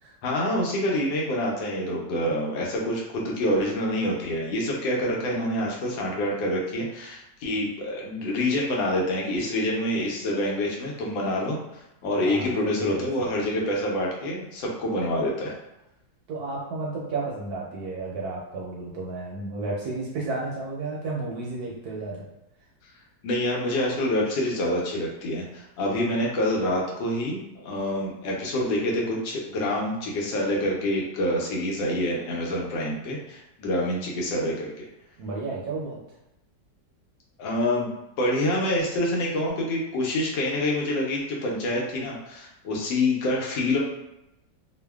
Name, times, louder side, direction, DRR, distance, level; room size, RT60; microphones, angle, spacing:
voice 1, 0.2-15.5 23.2-34.9 37.4-37.9 38.2-43.8, left 1 dB, 80° left, -3 dB, 1.4 m, -27 dB
voice 2, 12.2-13.3 16.3-22.3 35.2-36.0, right 3 dB, 70° right, -3 dB, 1.0 m, -32 dB
3.2 x 2.1 x 2.2 m, 0.89 s
omnidirectional pair, 2.0 m